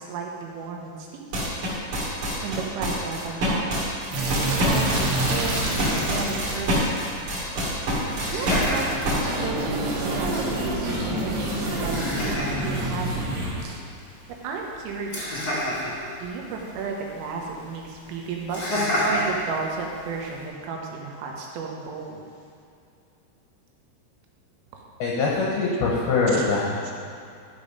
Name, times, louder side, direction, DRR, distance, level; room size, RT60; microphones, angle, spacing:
voice 1, 0.0-1.4 2.4-3.7 4.4-7.2 8.3-8.9 9.1-13.3 13.6-13.8 14.4-15.5 16.2-18.6 19.0-22.2 24.7-24.8 26.3-26.5 26.8-26.9, right 5 dB, 80° right, 0 dB, 3.7 m, -33 dB
sound 1, 1.3-9.2, equal, 45° right, 3.6 m, -26 dB
sound 2, 4.1-13.6, right 1 dB, 60° right, 3.3 m, -28 dB
Laughter, 4.5-20.5, left 1 dB, 35° left, 1.5 m, -33 dB
voice 2, 25.0-26.9, left 3 dB, 75° left, -4 dB, 2.2 m, -23 dB
13.0 x 5.0 x 5.4 m, 2.5 s
omnidirectional pair, 5.8 m